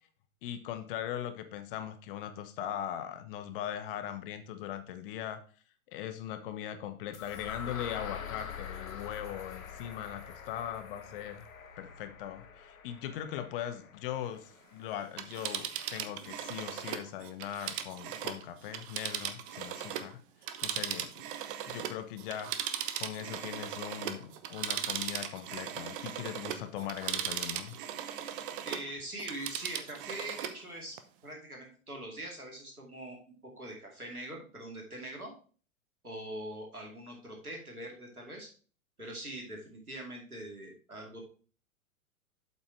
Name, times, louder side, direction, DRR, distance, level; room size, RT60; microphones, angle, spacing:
voice 1, 0.4-5.4 5.9-11.5 11.8-20.2 20.6-21.1 21.7-22.5 23.0-27.8, left 10 dB, 40° left, 9 dB, 1.0 m, -40 dB
sound 1, 7.1-15.1, left 7 dB, 70° left, 1.2 m, -45 dB
Telephone, 15.0-20.1 20.4-28.9 29.2-30.6 31.0-31.1, right 10 dB, 40° right, 0.8 m, -38 dB
voice 2, 28.6-31.0 31.2-35.3 36.0-38.5 39.0-41.2, right 1 dB, 85° right, 0 dB, 2.7 m, -43 dB
7.9 x 5.6 x 4.6 m, 0.40 s
figure-of-eight pair, 100°, 43 cm